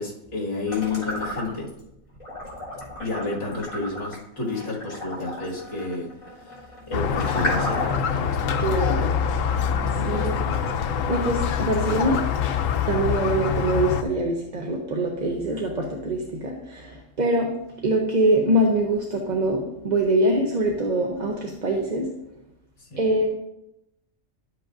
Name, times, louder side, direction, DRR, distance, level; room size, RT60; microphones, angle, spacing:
voice 1, 0.0-1.8 3.0-8.7 9.0-9.2 9.7-10.6 22.9-23.0, left 3 dB, 60° left, -3 dB, 2.2 m, -31 dB
sound 1, 0.7-1.8 2.2-8.1, equal, 30° left, 3.8 m, -33 dB
Squeak, 6.9-14.0, left 7 dB, 80° left, 1.0 m, -25 dB
voice 2, 8.6-9.0 9.9-10.5 11.1-12.2 12.9-17.5 17.8-22.1 23.0-23.3, right 1 dB, 40° right, 0 dB, 0.9 m, -24 dB
12.0 x 7.6 x 2.6 m, 0.86 s
omnidirectional pair, 1.3 m